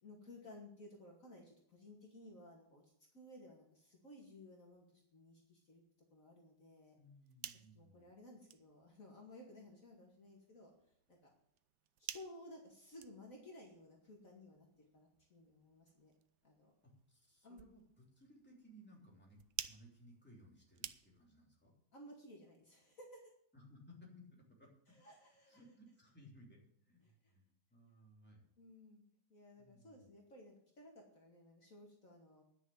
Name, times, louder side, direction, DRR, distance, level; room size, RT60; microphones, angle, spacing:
voice 1, 0.0-5.8 6.1-7.0 7.7-10.7 11.1-11.2 12.0-16.1 16.4-16.7 17.4-17.6 21.9-23.2 24.9-25.6 28.6-29.0 29.3-32.4, left 1 dB, 50° left, -1 dB, 2.5 m, -57 dB
voice 2, 6.9-8.1 16.8-19.4 19.6-21.7 23.5-25.0 25.5-28.4 29.6-30.1, equal, 5° left, -3 dB, 3.4 m, -62 dB
sound 1, 7.0-21.4, right 12 dB, 75° right, 1.2 m, -54 dB
10.5 x 6.9 x 8.8 m, 0.67 s
omnidirectional pair, 1.9 m